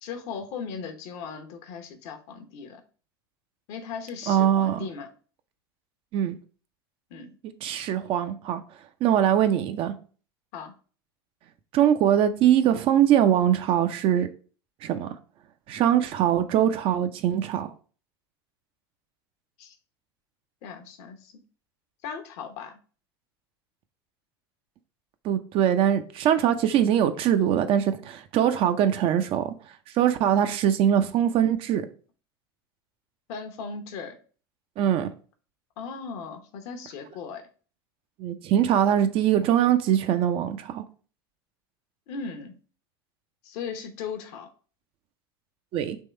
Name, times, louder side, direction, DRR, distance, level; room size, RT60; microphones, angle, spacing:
voice 1, 0.0-2.8 3.7-5.1 7.1-7.3 10.5-10.7 19.6-19.7 20.6-21.3 22.0-22.8 33.3-34.2 35.8-37.4 42.1-42.6 43.4-44.5, left 6 dB, 55° left, 0.9 m, -37 dB
voice 2, 4.3-4.9 6.1-6.4 7.6-8.6 9.0-9.9 11.7-14.3 14.8-15.1 15.7-17.7 25.2-29.5 29.9-31.9 34.8-35.1 38.2-40.8 45.7-46.0, right 10 dB, 45° right, 0.5 m, -22 dB
3.6 x 3.0 x 4.3 m
hypercardioid pair, 85°, 13 cm